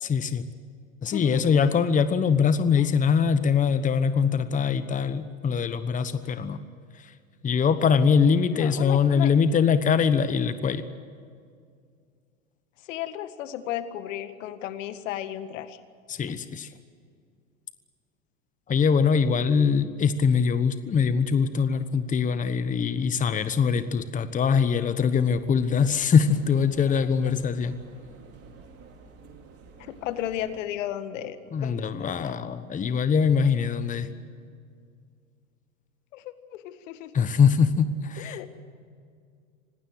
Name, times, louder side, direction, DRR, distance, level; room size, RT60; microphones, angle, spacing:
voice 1, 0.0-0.4 1.0-6.6 7.0-7.1 7.4-10.8 16.1-16.7 18.7-27.8 31.5-34.1 37.1-38.4, left 6 dB, 20° left, 12 dB, 1.1 m, -23 dB
voice 2, 1.1-1.6 2.8-2.9 8.5-9.3 12.8-15.8 29.8-32.4 36.1-37.3 38.2-38.7, left 11 dB, 65° left, 11 dB, 1.8 m, -35 dB
sound 1, 25.3-30.6, right 4 dB, 35° right, 4.1 m, -50 dB
26.0 x 18.5 x 8.0 m, 2.2 s
hypercardioid pair, 100°, 41 cm